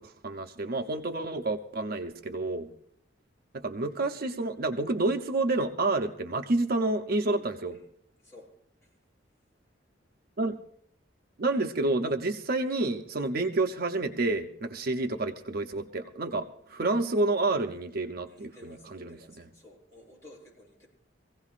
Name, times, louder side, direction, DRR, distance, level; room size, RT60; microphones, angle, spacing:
voice 1, 0.0-2.7 3.5-7.8 10.4-10.6 11.4-19.5, right 2 dB, 55° right, 6 dB, 0.6 m, -29 dB
voice 2, 7.4-7.8 8.2-8.5 8.8-9.0 18.3-20.9, left 1 dB, 15° left, -5 dB, 7.7 m, -54 dB
24.0 x 16.0 x 2.5 m, 0.68 s
head